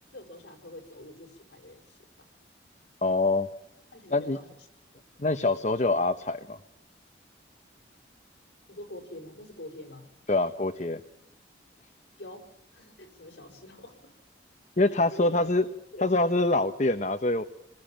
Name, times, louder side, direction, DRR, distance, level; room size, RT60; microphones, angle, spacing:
voice 1, 0.1-2.1 3.9-4.5 5.1-5.3 8.7-10.1 12.2-12.5 12.7-14.1 15.1-15.5 15.9-16.1, left 1 dB, 60° left, 2 dB, 5.7 m, -45 dB
voice 2, 3.0-3.5 4.1-4.4 5.2-6.6 10.3-11.0 14.8-15.6 16.0-17.4, left 2 dB, 40° left, 8 dB, 1.0 m, -25 dB
27.0 x 21.0 x 8.9 m, 0.83 s
head